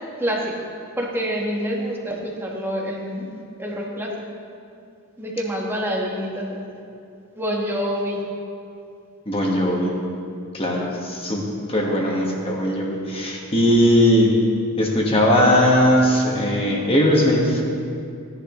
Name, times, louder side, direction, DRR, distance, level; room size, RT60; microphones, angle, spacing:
voice 1, 0.2-0.5 1.0-3.3 3.6-4.1 5.2-6.6 7.4-8.2, equal, 10° right, -2 dB, 1.4 m, -26 dB
voice 2, 9.3-9.9 10.5-14.4 14.8-17.6, equal, 25° left, -1 dB, 1.5 m, -19 dB
16.5 x 10.5 x 3.1 m, 2.5 s
head